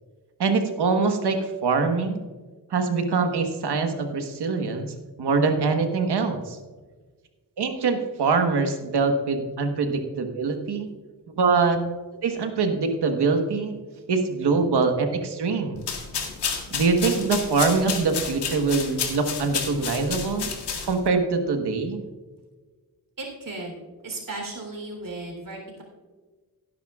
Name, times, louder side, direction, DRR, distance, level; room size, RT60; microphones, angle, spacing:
voice 1, 0.4-2.2 2.7-6.6 7.6-10.9 11.4-11.8 12.2-13.8 14.1-15.8 16.7-20.5 20.8-22.0, right 4 dB, 80° right, 6 dB, 1.4 m, -24 dB
sound 1, 15.8-21.1, left 6 dB, 90° left, 1.8 m, -31 dB
voice 2, 23.2-23.8 24.0-25.8, right 2 dB, 55° right, 1 dB, 3.5 m, -35 dB
17.0 x 10.5 x 2.4 m, 1.4 s
cardioid pair, 80°, 40 cm